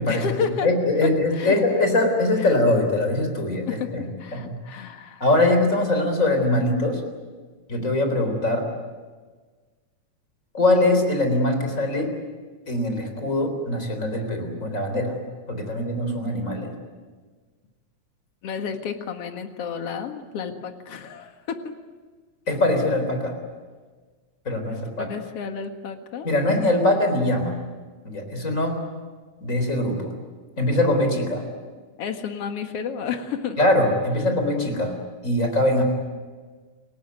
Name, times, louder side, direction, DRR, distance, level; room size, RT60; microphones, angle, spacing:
voice 1, 0.1-0.7 1.0-1.6 2.4-2.5 3.7-5.3 18.4-21.7 24.7-26.3 32.0-33.6, left 6 dB, 55° left, 6 dB, 2.6 m, -31 dB
voice 2, 0.6-4.0 4.3-4.4 5.2-7.0 7.7-8.6 10.5-12.1 12.7-15.2 15.5-16.7 22.5-23.3 24.5-25.1 26.2-27.6 28.0-28.7 29.4-30.1 30.6-31.4 33.6-35.0 35.2-35.8, left 1 dB, 25° left, 6 dB, 4.2 m, -22 dB
29.0 x 17.0 x 9.5 m, 1.4 s
omnidirectional pair, 3.4 m